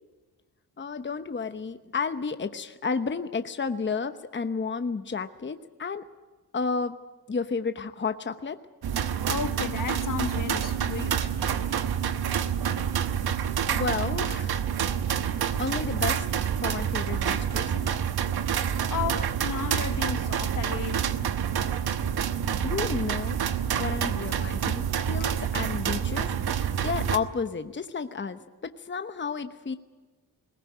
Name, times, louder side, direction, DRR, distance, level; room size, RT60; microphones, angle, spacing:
voice 1, 0.8-6.1 6.5-7.0 7.3-8.6 13.7-14.6 15.6-17.9 22.6-23.4 23.8-29.7, left 5 dB, 30° left, 1.0 m, -32 dB
sound 1, 8.8-27.2, right 8 dB, 75° right, 1.2 m, -28 dB
voice 2, 9.3-11.3 18.9-21.1 25.2-25.3, left 7 dB, 55° left, 1.2 m, -33 dB
20.5 x 17.5 x 9.2 m
cardioid pair, 70°, 38 cm